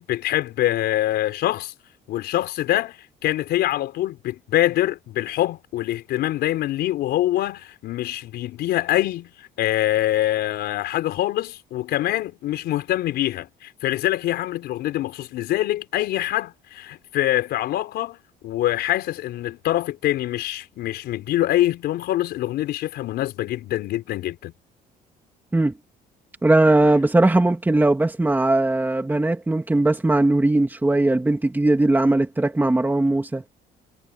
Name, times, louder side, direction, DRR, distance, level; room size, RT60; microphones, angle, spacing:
voice 1, 0.0-1.7 2.1-9.3 9.6-18.2 18.4-24.5, left 14 dB, 75° left, 4.6 m, -24 dB
voice 2, 26.4-33.4, right 2 dB, 10° right, 2.5 m, -19 dB
cardioid pair, 110°, 17 cm